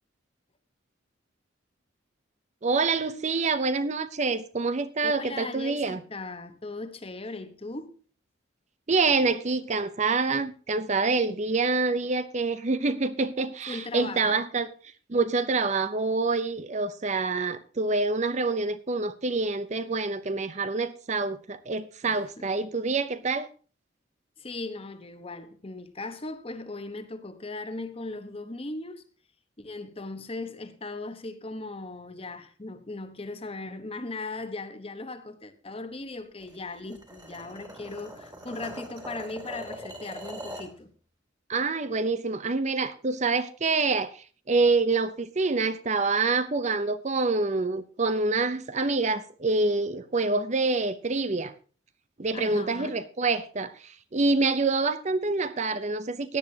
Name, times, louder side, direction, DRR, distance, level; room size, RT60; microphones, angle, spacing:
voice 1, 2.6-6.0 8.9-14.7 15.1-23.5 41.5-51.5 52.2-56.4, right 3 dB, 35° right, 0.6 m, -26 dB
voice 2, 5.0-8.0 13.7-14.4 22.1-22.5 24.4-29.0 29.6-40.9 52.3-53.0, left 2 dB, 30° left, 1.0 m, -38 dB
sound 1, 36.4-40.8, right 1 dB, 20° right, 2.4 m, -42 dB
17.0 x 10.5 x 2.8 m
head